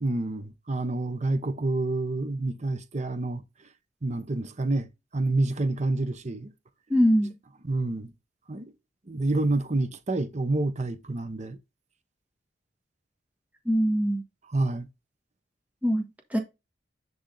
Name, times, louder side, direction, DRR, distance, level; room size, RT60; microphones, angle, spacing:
voice 1, 0.0-3.4 4.0-6.5 7.6-8.1 8.5-8.7 9.1-11.6 14.5-14.9, right 2 dB, 40° right, 0.8 m, -28 dB
voice 2, 6.9-7.3 13.6-14.2 15.8-16.4, equal, 10° right, 1.4 m, -23 dB
10.5 x 3.5 x 3.8 m
head